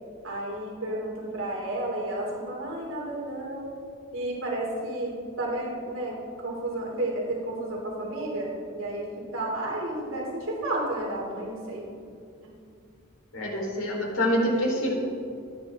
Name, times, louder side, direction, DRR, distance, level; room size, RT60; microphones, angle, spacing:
voice 1, 0.2-3.7 4.1-11.9 12.4-12.5, right 1 dB, 80° right, -3 dB, 3.2 m, -32 dB
voice 2, 13.3-15.0, equal, 90° left, -2 dB, 4.3 m, -26 dB
26.5 x 9.7 x 3.8 m, 2.4 s
head